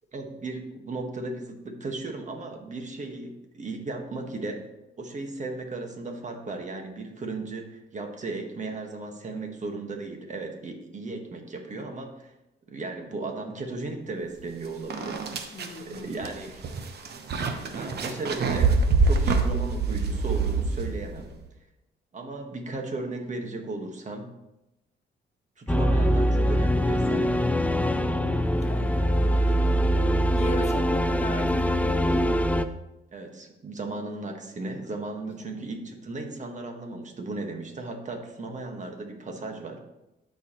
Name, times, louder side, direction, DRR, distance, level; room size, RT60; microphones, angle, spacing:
voice 1, 0.1-4.6 5.0-12.3 12.7-15.2 15.8-16.7 17.7-18.7 19.0-21.3 22.1-24.3 25.6-27.5 29.4-29.7 33.1-39.8, right 2 dB, 40° right, 4 dB, 1.5 m, -36 dB
sound 1, 14.4-14.5 14.9-21.3, right 4 dB, 55° right, 1.0 m, -25 dB
voice 2, 15.5-16.3 17.8-18.2 27.9-29.8 30.3-32.2 35.2-35.3, left 2 dB, 35° left, 3 dB, 1.4 m, -39 dB
sound 2, 25.7-32.6, equal, 5° left, 0.4 m, -23 dB
13.5 x 4.8 x 3.0 m, 0.93 s
cardioid pair, 90°, 20 cm